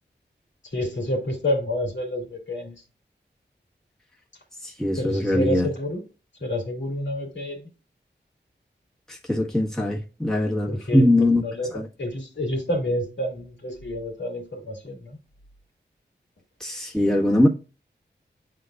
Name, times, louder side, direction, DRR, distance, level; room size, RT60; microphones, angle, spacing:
voice 1, 0.7-2.8 5.0-6.0 6.4-7.7 10.7-15.2, left 1 dB, 80° left, 2.5 m, -29 dB
voice 2, 4.8-5.7 9.1-11.4 11.7-11.8 16.6-17.5, left 1 dB, 5° left, 1.5 m, -21 dB
10.5 x 3.9 x 2.3 m
wide cardioid pair, 90°, 19 cm